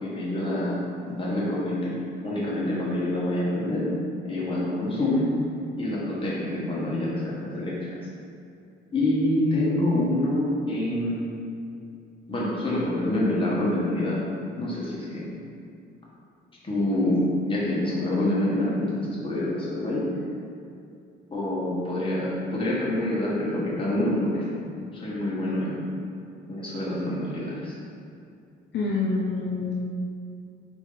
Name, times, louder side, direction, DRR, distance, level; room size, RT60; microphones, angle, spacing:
voice 1, 0.0-1.9 2.2-3.9 4.2-5.3 5.7-7.9 8.9-11.3 12.3-14.2 14.6-15.3 16.6-20.1 21.3-24.5 24.9-25.8 26.5-27.7, left 1 dB, 25° left, -7 dB, 1.4 m, -26 dB
voice 2, 28.7-29.8, left 3 dB, 65° left, -3 dB, 0.5 m, -26 dB
4.5 x 3.0 x 3.9 m, 2.5 s
cardioid pair, 90°, 20 cm